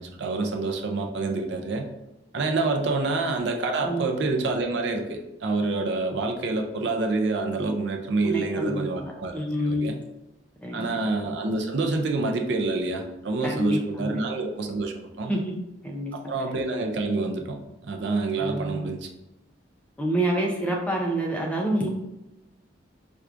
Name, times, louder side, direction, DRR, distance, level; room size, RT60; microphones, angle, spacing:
voice 1, 0.0-1.9 2.3-10.0 10.7-15.3 16.1-19.1, right 3 dB, 65° right, 3 dB, 0.4 m, -27 dB
voice 2, 8.2-9.9 10.6-11.0 13.4-14.1 15.3-15.6 15.8-16.1 18.4-18.9 20.0-21.9, right 1 dB, 5° left, 0 dB, 0.4 m, -27 dB
4.4 x 2.4 x 2.4 m, 0.95 s
head